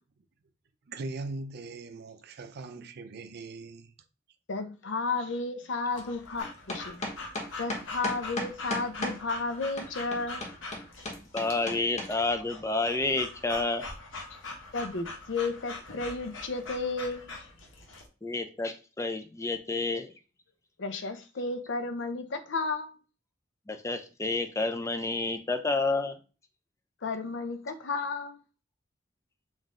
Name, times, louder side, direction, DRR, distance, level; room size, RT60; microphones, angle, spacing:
voice 1, 0.9-3.9, right 3 dB, 55° right, 0.5 m, -40 dB
voice 2, 4.5-7.1 7.6-10.5 14.7-17.5 20.8-22.9 27.0-28.4, left 3 dB, 70° left, 0.6 m, -33 dB
Breathing / Dog, 5.9-18.1, left 3 dB, 85° left, 1.0 m, -43 dB
sound 1, 6.4-9.2 9.8-12.1, left 1 dB, 40° left, 0.9 m, -34 dB
voice 3, 11.2-13.8 18.2-20.1 23.7-26.1, left 3 dB, 15° left, 0.5 m, -30 dB
3.9 x 2.5 x 3.7 m
head